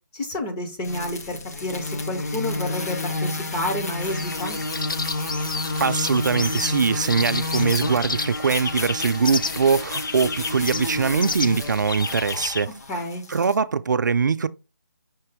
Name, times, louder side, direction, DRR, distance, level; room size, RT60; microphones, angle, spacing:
voice 1, 0.1-4.6 12.9-13.2, left 1 dB, 10° left, 0.5 m, -30 dB
sound 1, 0.8-13.6, left 2 dB, 50° left, 0.9 m, -30 dB
sound 2, 4.0-12.7, left 4 dB, 80° left, 0.5 m, -32 dB
voice 2, 5.8-12.7 13.3-14.5, right 5 dB, 60° right, 0.4 m, -22 dB
5.9 x 2.6 x 3.4 m
figure-of-eight pair, 155°, 11 cm